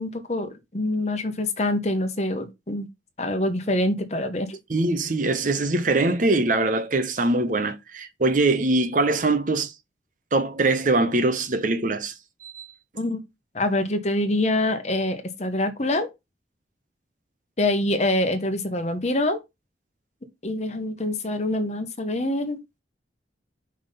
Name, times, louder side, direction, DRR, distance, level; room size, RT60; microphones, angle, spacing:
voice 1, 0.0-2.9 3.2-4.6 13.0-13.2 13.5-16.1 17.6-19.4 20.4-22.6, left 1 dB, 35° left, 1.0 m, -25 dB
voice 2, 4.7-9.7 10.3-12.1 12.4-12.7, right 2 dB, 45° right, 0.8 m, -22 dB
5.4 x 3.6 x 5.5 m
head